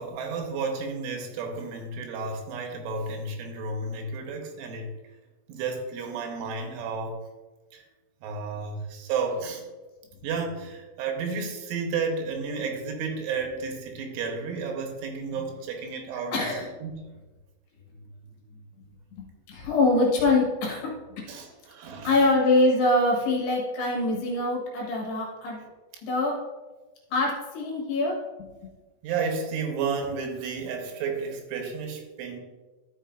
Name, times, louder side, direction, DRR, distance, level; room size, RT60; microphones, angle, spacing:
voice 1, 0.0-4.9 5.5-7.2 7.7-7.8 8.2-9.6 10.2-16.5 16.8-17.0 21.3-22.2 29.0-32.4, right 4 dB, 80° right, 3 dB, 3.5 m, -32 dB
voice 2, 16.3-16.7 19.5-20.9 22.0-25.6 26.0-26.4 27.1-28.5, left 2 dB, 65° left, -2 dB, 3.1 m, -24 dB
12.5 x 6.5 x 2.6 m, 1.2 s
omnidirectional pair, 5.6 m